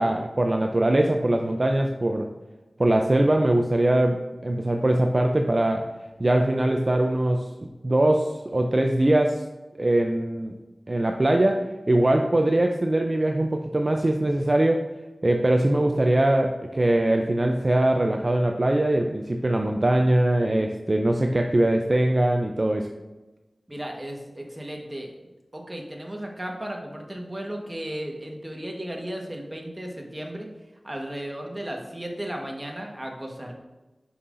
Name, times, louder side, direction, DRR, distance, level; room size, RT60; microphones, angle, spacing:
voice 1, 0.0-2.3 2.8-5.9 6.2-7.5 7.8-9.4 9.8-10.5 10.9-14.8 15.2-22.9, right 1 dB, 45° right, 3 dB, 0.4 m, -22 dB
voice 2, 23.7-25.1 25.5-30.5 30.8-33.5, right 1 dB, 25° right, 1 dB, 1.3 m, -35 dB
6.7 x 5.6 x 2.6 m, 1.1 s
cardioid pair, 40°, 0 cm